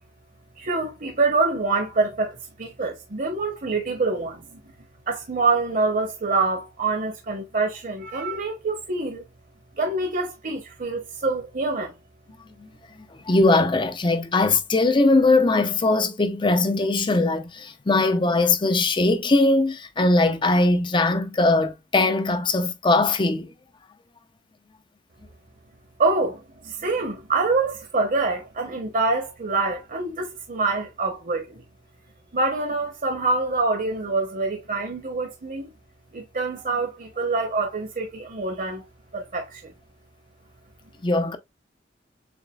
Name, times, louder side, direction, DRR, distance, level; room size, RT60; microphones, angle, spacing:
voice 1, 0.6-4.6 5.1-9.2 9.8-12.0 26.0-31.6 32.3-35.7 36.1-38.9 39.1-39.7, right 3 dB, 50° right, 0.9 m, -25 dB
voice 2, 13.0-23.5 41.0-41.4, left 2 dB, 25° left, 0.5 m, -20 dB
7.0 x 2.4 x 2.3 m
head